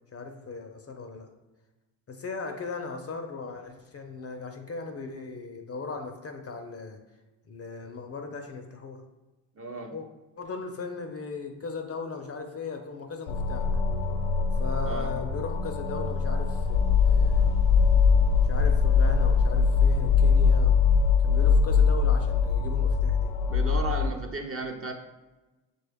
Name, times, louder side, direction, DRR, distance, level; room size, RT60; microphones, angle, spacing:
voice 1, 0.1-1.3 2.1-7.0 7.5-9.0 9.9-10.1 10.4-13.8 14.6-17.5 18.5-20.8 21.2-23.3, left 4 dB, 30° left, 5 dB, 0.5 m, -37 dB
voice 2, 9.6-10.0 14.9-15.1 23.5-24.9, right 3 dB, 30° right, 3 dB, 0.5 m, -34 dB
sound 1, 13.3-24.1, left 5 dB, 75° left, 0.6 m, -22 dB
5.9 x 2.3 x 3.4 m, 1.1 s
supercardioid pair, 65°, 49 cm